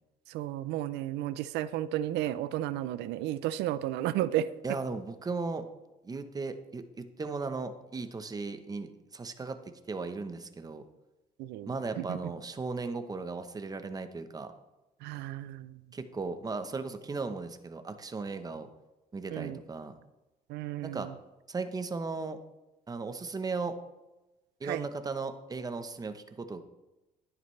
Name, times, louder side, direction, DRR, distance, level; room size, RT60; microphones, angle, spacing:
voice 1, 0.3-4.5 11.4-11.7 12.0-12.2 15.0-15.7 19.3-19.6 20.5-21.1 24.6-24.9, right 13 dB, 85° right, 16 dB, 0.5 m, -33 dB
voice 2, 4.6-5.7 6.0-9.6 9.9-10.8 11.7-14.5 15.9-18.7 19.1-19.9 20.8-21.1 21.5-22.4 22.9-23.8 24.6-26.6, right 4 dB, 20° right, 9 dB, 1.0 m, -36 dB
11.5 x 10.0 x 3.3 m, 1.0 s
cardioid pair, 110°, 17 cm